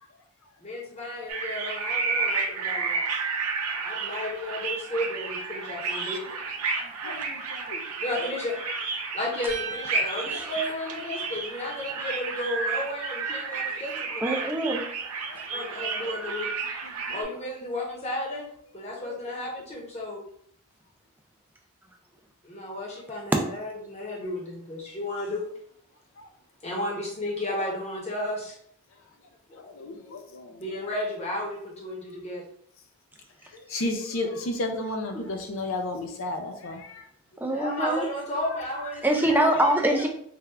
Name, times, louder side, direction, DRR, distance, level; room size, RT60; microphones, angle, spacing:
voice 1, 0.6-3.2 3.7-6.3 8.0-8.6 9.1-14.4 15.5-16.5 17.1-18.5 18.7-20.2 22.4-25.5 26.6-28.6 29.5-29.6 30.6-32.4 37.5-39.0 39.3-39.6, left 1 dB, 30° left, -2 dB, 0.9 m, -33 dB
sound 1, 1.3-17.2, right 4 dB, 85° right, 0.6 m, -31 dB
voice 2, 6.8-7.8 10.1-10.2 15.3-16.0 19.0-19.2 29.7-30.6 33.7-37.0, left 2 dB, 60° left, 4 dB, 0.5 m, -33 dB
sound 2, 9.5-11.7, right 5 dB, 45° right, 1.1 m, -40 dB
voice 3, 14.2-14.8 15.3-15.4 33.7-33.8 37.4-38.1 39.0-40.1, right 1 dB, 10° right, 2 dB, 0.4 m, -24 dB
3.4 x 2.4 x 3.2 m, 0.65 s
head